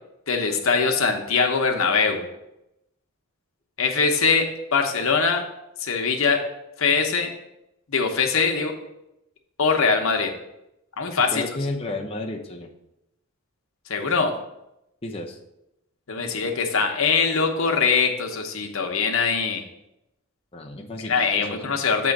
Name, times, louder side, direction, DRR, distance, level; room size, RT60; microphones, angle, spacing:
voice 1, 0.3-2.3 3.8-5.4 5.8-6.4 6.8-7.3 7.9-8.7 9.6-10.3 11.0-11.4 13.9-14.3 16.1-19.6 21.0-22.1, left 5 dB, 70° left, 3 dB, 0.9 m, -22 dB
voice 2, 11.3-12.7 15.0-15.4 20.5-21.7, left 2 dB, 25° left, 0 dB, 0.7 m, -32 dB
7.6 x 3.1 x 5.9 m, 0.87 s
head